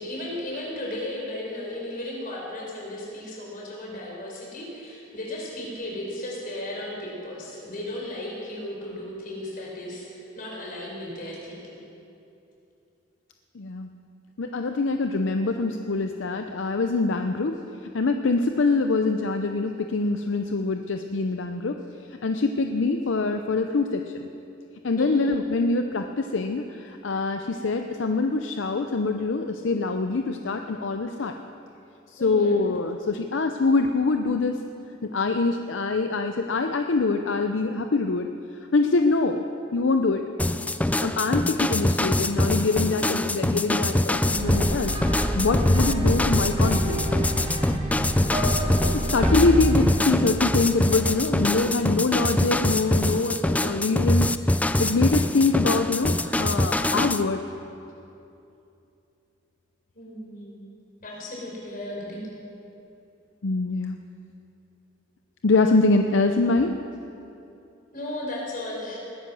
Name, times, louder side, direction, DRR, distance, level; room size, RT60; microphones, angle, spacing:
voice 1, 0.0-11.8 25.0-25.3 32.2-32.5 48.2-49.0 59.9-60.6 61.0-62.2 67.9-69.0, left 1 dB, 45° left, -3 dB, 4.3 m, -35 dB
voice 2, 13.5-13.9 14.4-17.6 17.9-21.8 22.2-24.3 24.8-31.3 32.1-34.6 35.0-38.3 38.7-39.4 39.7-40.2 41.0-44.9 45.3-47.0 48.9-54.3 54.8-57.4 63.4-64.0 65.4-66.8, left 3 dB, 70° left, 6 dB, 0.6 m, -24 dB
sound 1, 40.4-57.2, left 1 dB, 10° left, 0.3 m, -24 dB
sound 2, 44.3-51.6, right 1 dB, 30° right, 2.7 m, -28 dB
20.0 x 10.5 x 6.2 m, 2.7 s
head